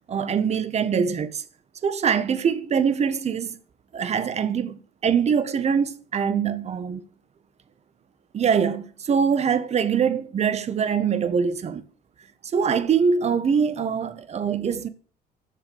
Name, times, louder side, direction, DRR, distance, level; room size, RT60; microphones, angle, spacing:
voice 1, 0.1-1.4 1.8-3.6 3.9-7.0 8.3-11.8 12.5-14.9, right 6 dB, 40° right, 1.1 m, -23 dB
7.7 x 7.3 x 8.1 m
cardioid pair, 110°, 17 cm